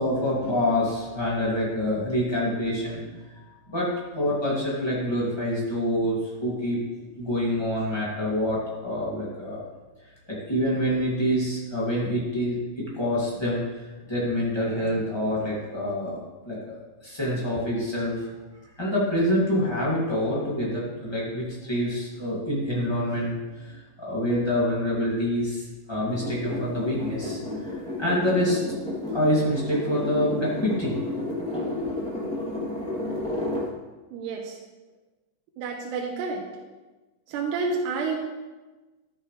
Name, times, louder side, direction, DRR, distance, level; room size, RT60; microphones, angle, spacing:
voice 1, 0.0-3.0 3.7-6.8 7.2-9.6 10.3-16.2 16.4-18.3 18.8-27.7 28.0-28.6 29.1-31.0 31.8-32.0, equal, 20° left, -7 dB, 0.6 m, -26 dB
sound 1, 26.1-33.7, left 2 dB, ahead, 1.5 m, -31 dB
voice 2, 34.1-34.6 35.6-36.4 37.3-38.2, right 4 dB, 75° right, 0 dB, 2.8 m, -29 dB
13.5 x 9.9 x 3.4 m, 1.2 s
omnidirectional pair, 5.6 m